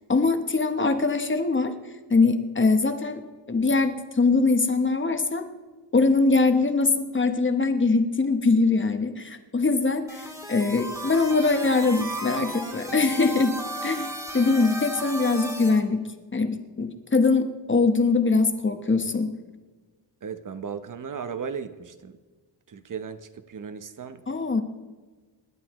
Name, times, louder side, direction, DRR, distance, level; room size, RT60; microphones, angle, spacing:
voice 1, 0.1-1.7 2.1-3.2 3.5-5.4 5.9-13.6 13.8-14.1 14.3-16.0 16.3-19.3 24.3-24.6, left 3 dB, 25° left, 7 dB, 1.0 m, -22 dB
sound 1, 10.1-15.8, right 1 dB, 5° right, 1.6 m, -35 dB
voice 2, 20.2-22.2 22.7-24.2, right 6 dB, 45° right, 11 dB, 0.8 m, -36 dB
26.0 x 11.0 x 3.1 m, 1.3 s
wide cardioid pair, 145°, 44 cm